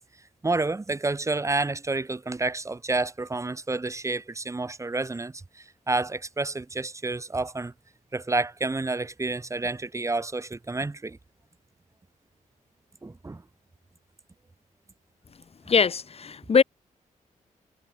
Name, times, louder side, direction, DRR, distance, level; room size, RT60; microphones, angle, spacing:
voice 1, 0.4-7.7 8.1-11.2 13.0-13.4, right 3 dB, 20° right, 5.2 m, -29 dB
voice 2, 15.7-16.6, left 5 dB, 45° left, 6.4 m, -21 dB
wide cardioid pair, 130°, 14 cm